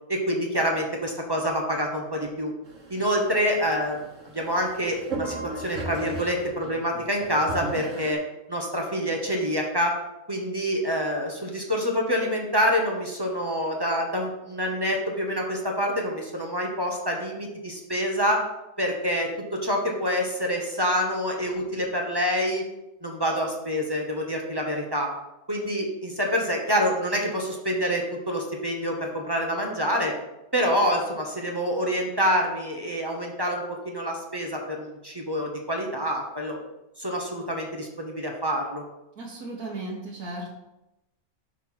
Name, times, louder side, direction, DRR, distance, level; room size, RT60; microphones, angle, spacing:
voice 1, 0.1-2.5 2.9-4.1 4.3-8.2 8.5-9.9 10.3-18.4 18.8-22.7 23.0-25.1 25.5-30.1 30.5-36.6 37.0-38.8, equal, 20° right, 0 dB, 0.8 m, -27 dB
sound 1, 2.7-8.1, right 3 dB, 55° right, 1.6 m, -37 dB
voice 2, 39.2-40.6, right 2 dB, 70° right, -4 dB, 1.6 m, -35 dB
6.0 x 4.5 x 5.6 m, 0.94 s
omnidirectional pair, 1.6 m